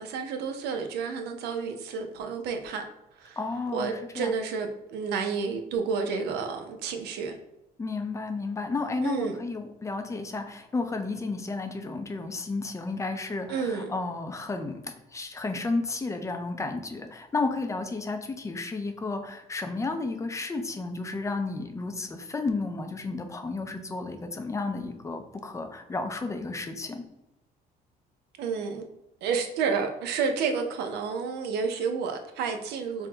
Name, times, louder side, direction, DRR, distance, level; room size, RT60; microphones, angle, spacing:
voice 1, 0.0-2.8 3.2-3.4 3.7-7.4 9.0-9.4 13.5-13.9 28.4-28.8 29.2-33.1, right 5 dB, 80° right, 5 dB, 0.6 m, -30 dB
voice 2, 3.4-4.3 7.8-27.0, left 3 dB, 20° left, 6 dB, 0.5 m, -32 dB
3.6 x 2.2 x 3.8 m, 0.90 s
cardioid pair, 110°, 17 cm